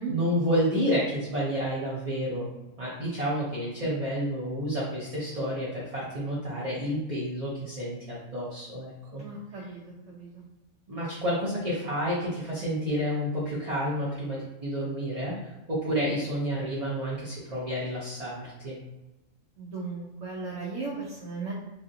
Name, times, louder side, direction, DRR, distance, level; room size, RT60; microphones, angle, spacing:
voice 1, 0.1-2.5 2.8-9.2 10.9-18.8, equal, 40° right, -7 dB, 0.6 m, -30 dB
voice 2, 9.2-9.8 10.1-10.4 19.6-21.5, right 4 dB, 75° right, -4 dB, 1.0 m, -36 dB
3.2 x 2.7 x 2.6 m, 1.0 s
omnidirectional pair, 1.3 m